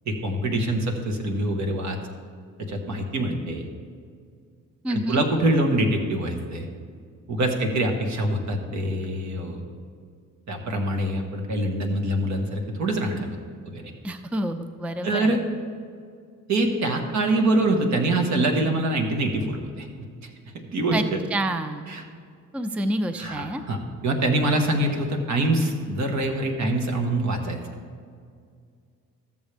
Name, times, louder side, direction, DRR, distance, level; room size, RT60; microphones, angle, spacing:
voice 1, 0.0-2.0 2.7-3.7 4.9-6.6 7.3-9.6 10.5-13.4 13.6-13.9 15.0-15.4 16.5-19.9 20.2-20.3 20.7-21.2 21.9-22.0 23.2-27.6, right 1 dB, 65° right, 3 dB, 1.4 m, -24 dB
voice 2, 4.8-5.2 14.0-15.4 20.9-21.0 21.3-21.9 22.5-23.6, right 1 dB, 5° right, 9 dB, 0.4 m, -28 dB
13.5 x 7.2 x 3.4 m, 2.2 s
cardioid pair, 90°, 30 cm